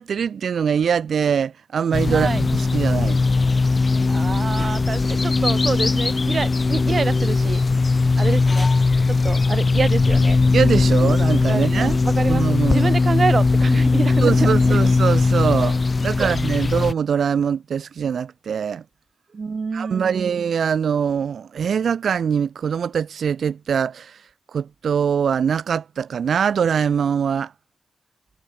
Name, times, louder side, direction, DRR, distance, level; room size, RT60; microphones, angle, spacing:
voice 1, 0.0-3.2 10.5-12.0 12.3-12.9 14.2-18.8 19.7-24.2 24.5-27.5, right 7 dB, 80° right, 5.0 m, -23 dB
sound 1, 1.9-16.9, left 3 dB, 35° left, 5.5 m, -19 dB
voice 2, 2.1-2.4 4.1-7.6 8.2-8.7 9.1-10.4 11.5-14.8 16.2-16.7 19.3-20.3, right 4 dB, 45° right, 6.6 m, -27 dB
wide cardioid pair, 115°, 0 cm